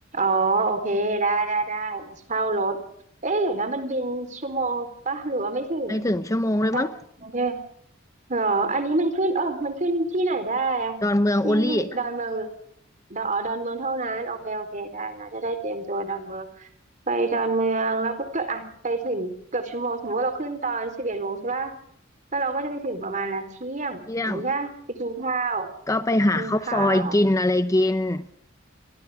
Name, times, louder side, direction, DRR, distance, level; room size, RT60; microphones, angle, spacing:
voice 1, 0.1-2.8 3.2-6.1 6.7-6.9 7.2-7.6 8.3-11.0 11.4-12.5 13.1-16.7 17.1-21.7 22.3-24.7 25.0-25.7 26.4-27.2, right 3 dB, 40° right, 4.2 m, -27 dB
voice 2, 5.9-6.9 11.0-12.0 24.1-24.4 25.9-28.3, left 1 dB, 15° left, 0.8 m, -22 dB
29.5 x 25.0 x 3.7 m
head